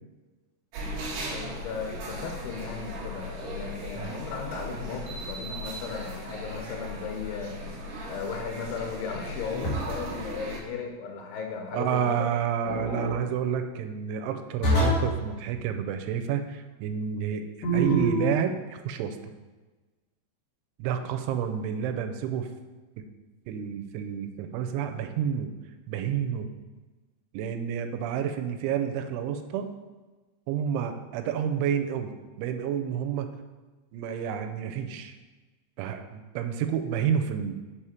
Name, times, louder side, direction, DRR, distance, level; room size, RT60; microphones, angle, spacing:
sound 1, 0.7-10.6, equal, 70° right, 2.1 m, -37 dB
voice 1, 1.3-7.8 8.1-12.3, left 5 dB, 85° left, 3 dB, 3.2 m, -36 dB
sound 2, 9.6-10.1 12.6-13.1 14.6-15.2 17.6-18.3, right 1 dB, 65° left, 1.5 m, -25 dB
voice 2, 11.7-17.5 17.7-19.2 20.8-22.5 23.5-25.5 25.9-26.5 27.3-29.7 30.5-32.1 32.4-33.3 33.9-35.1 35.8-37.6, right 8 dB, 90° right, 7 dB, 3.0 m, -29 dB
6.8 x 4.9 x 4.4 m, 1.2 s
omnidirectional pair, 5.3 m